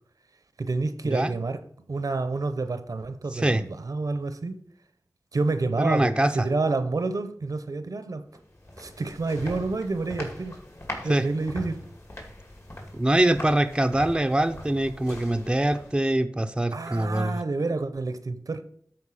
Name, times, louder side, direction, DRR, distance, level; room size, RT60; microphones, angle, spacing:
voice 1, 0.6-1.6 1.9-4.5 5.3-8.2 8.8-10.6 11.0-11.8 16.7-18.6, right 3 dB, 70° right, 0.8 m, -28 dB
voice 2, 3.3-3.6 5.8-6.5 11.1-11.2 12.9-17.4, right 1 dB, 15° right, 0.6 m, -24 dB
sound 1, 8.3-16.2, left 1 dB, 50° left, 2.4 m, -41 dB
13.0 x 4.5 x 4.9 m
wide cardioid pair, 80°, 6 cm